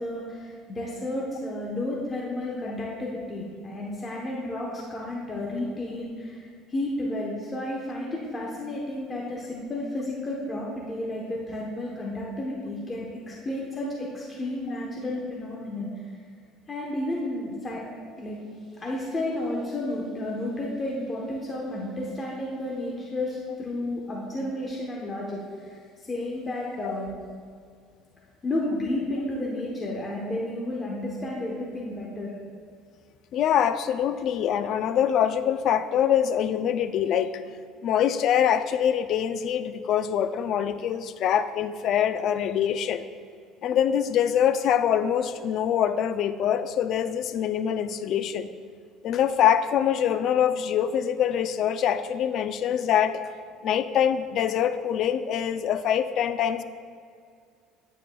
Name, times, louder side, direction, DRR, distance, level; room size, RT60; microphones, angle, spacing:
voice 1, 0.0-6.4 6.7-15.9 16.7-17.8 18.2-18.4 18.8-27.1 28.4-32.3, left 1 dB, 20° left, -3 dB, 1.0 m, -32 dB
voice 2, 33.3-37.4 37.8-43.1 43.6-48.5 49.0-53.2 53.6-56.6, left 9 dB, 50° left, 11 dB, 0.4 m, -24 dB
9.2 x 9.0 x 2.3 m, 2.2 s
cardioid pair, 135°, 0 cm